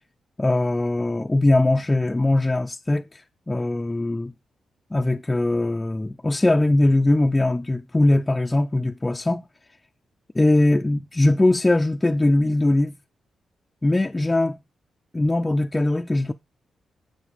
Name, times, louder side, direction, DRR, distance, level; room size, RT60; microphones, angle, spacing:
voice 1, 0.4-4.3 4.9-9.4 10.4-12.9 13.8-14.6 15.1-16.3, left 2 dB, 15° left, 0.3 m, -21 dB
7.7 x 7.0 x 3.4 m
cardioid pair, 100°, 0 cm